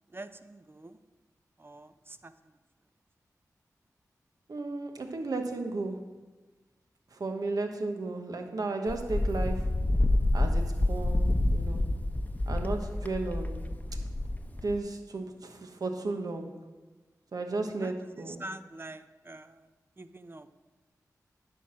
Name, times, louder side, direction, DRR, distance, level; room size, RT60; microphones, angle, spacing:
voice 1, 0.1-1.0 1.6-2.3 17.8-19.7 20.0-20.5, right 2 dB, 35° right, 11 dB, 0.6 m, -45 dB
voice 2, 4.5-6.1 7.1-9.7 10.3-11.9 12.5-13.7 14.6-16.5 17.3-18.4, right 3 dB, 70° right, 5 dB, 1.0 m, -34 dB
Wind, 8.9-14.8, left 1 dB, 25° left, 0.8 m, -28 dB
9.9 x 4.6 x 6.2 m, 1.2 s
cardioid pair, 45°, 7 cm